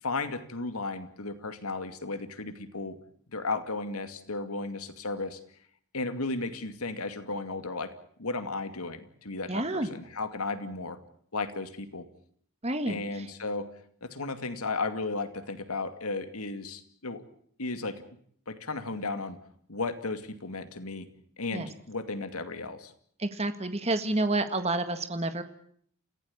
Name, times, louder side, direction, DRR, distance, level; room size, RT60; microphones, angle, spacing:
voice 1, 0.0-3.0 3.3-5.4 5.9-7.9 8.2-11.0 11.3-12.1 12.9-13.7 14.0-17.2 17.6-18.0 18.5-19.4 19.7-21.1 21.4-22.9, left 3 dB, 90° left, 10 dB, 2.4 m, -34 dB
voice 2, 9.5-9.9 12.6-13.2 21.5-21.7 23.2-25.4, right 2 dB, 30° right, 9 dB, 1.7 m, -29 dB
29.0 x 16.0 x 8.7 m, 0.62 s
head